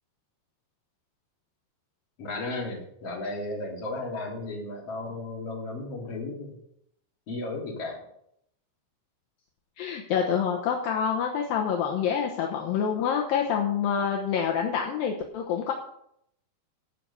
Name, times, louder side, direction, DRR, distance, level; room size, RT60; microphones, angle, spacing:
voice 1, 2.2-6.6 7.3-8.1, left 2 dB, 40° left, -2 dB, 3.8 m, -34 dB
voice 2, 9.8-15.7, left 7 dB, 75° left, 1 dB, 2.7 m, -27 dB
14.5 x 5.9 x 6.9 m, 0.74 s
omnidirectional pair, 4.5 m